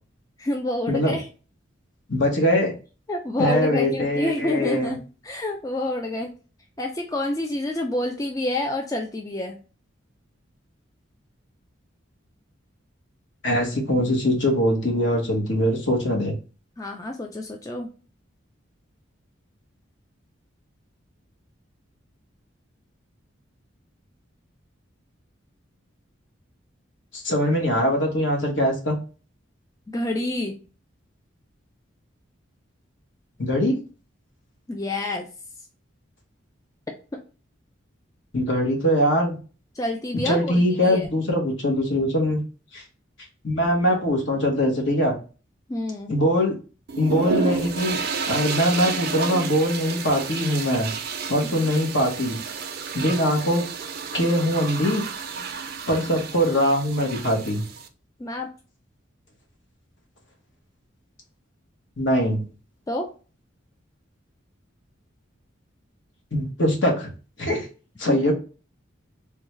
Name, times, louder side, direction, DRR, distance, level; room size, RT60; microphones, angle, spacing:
voice 1, 0.4-1.3 3.1-6.3 6.8-9.5 16.8-17.9 29.9-30.5 34.7-35.3 39.7-41.1 43.9-44.0 45.7-46.1 58.2-58.5 62.9-63.1 68.1-68.2, left 1 dB, 15° left, 2 dB, 0.3 m, -28 dB
voice 2, 2.1-2.7 3.4-4.9 13.4-16.4 27.1-29.0 33.4-33.8 38.3-39.4 40.2-42.4 42.7-42.8 43.4-45.2 46.1-46.6 46.9-48.0 48.2-50.9 51.3-52.4 52.9-53.6 54.1-55.0 55.9-57.6 62.0-62.4 66.3-67.1 67.4-67.7 68.0-68.3, equal, 65° left, 1 dB, 1.2 m, -22 dB
sound 1, 46.9-57.9, right 5 dB, 50° right, 0.4 m, -31 dB
3.5 x 2.2 x 3.1 m, 0.35 s
head